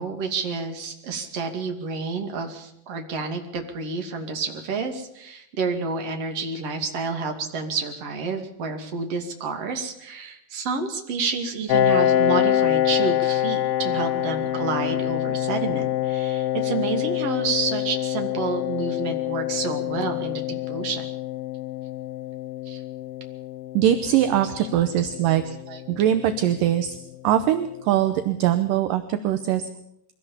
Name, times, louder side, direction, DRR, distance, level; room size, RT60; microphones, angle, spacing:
voice 1, 0.0-21.0 22.6-22.8 24.4-24.9 25.7-25.8, right 4 dB, 45° right, 4 dB, 3.0 m, -29 dB
Piano, 11.7-27.0, left 11 dB, 70° left, 2.6 m, -26 dB
voice 2, 23.7-25.4 25.9-27.0 27.2-29.6, right 11 dB, 70° right, 9 dB, 2.3 m, -21 dB
23.0 x 16.5 x 7.2 m, 0.77 s
omnidirectional pair, 4.7 m